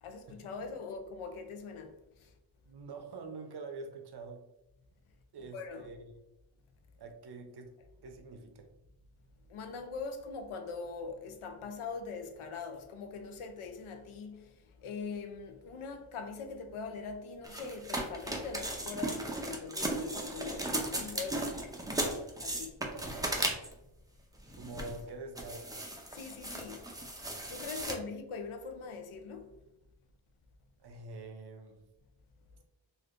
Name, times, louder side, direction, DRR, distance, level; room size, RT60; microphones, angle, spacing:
voice 1, 0.0-1.9 2.2-2.3 5.5-5.9 9.5-14.5 14.8-21.6 22.4-22.8 26.1-26.8 27.5-29.5, left 4 dB, 90° left, 0.6 m, -42 dB
voice 2, 2.6-4.5 5.3-6.0 7.0-8.7 22.8-23.6 24.6-25.7 27.8-28.0 30.8-31.8, right 3 dB, 55° right, 0.6 m, -46 dB
sound 1, 17.4-23.8 24.5-25.0 25.4-27.9, right 1 dB, 10° right, 0.4 m, -36 dB
3.3 x 2.5 x 2.5 m
wide cardioid pair, 90°, 48 cm